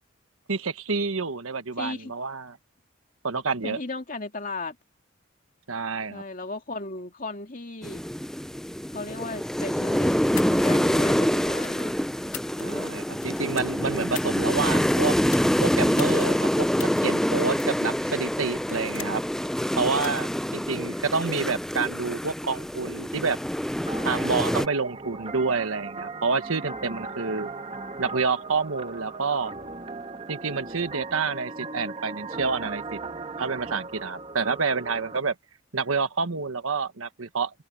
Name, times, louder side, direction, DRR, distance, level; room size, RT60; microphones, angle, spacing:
voice 1, 0.5-2.6 3.2-3.8 5.7-6.2 12.6-15.2 15.6-19.2 19.8-23.4 24.0-27.5 28.0-29.5 30.3-33.0 33.4-35.3 35.7-37.5, right 4 dB, 85° right, 1.3 m, -28 dB
voice 2, 1.8-2.1 3.6-4.8 6.1-8.0 8.9-10.1 10.5-12.0, left 3 dB, 40° left, 2.6 m, -36 dB
sound 1, 7.8-24.7, equal, ahead, 0.4 m, -26 dB
sound 2, 10.2-10.7 11.4-11.8 12.2-12.9 13.2-14.4 15.2-15.5 16.0-16.2 16.8-17.0 17.6-17.9 18.3-19.3 19.9-20.2, left 12 dB, 80° left, 2.3 m, -40 dB
sound 3, 23.9-35.2, right 3 dB, 30° right, 1.4 m, -38 dB
head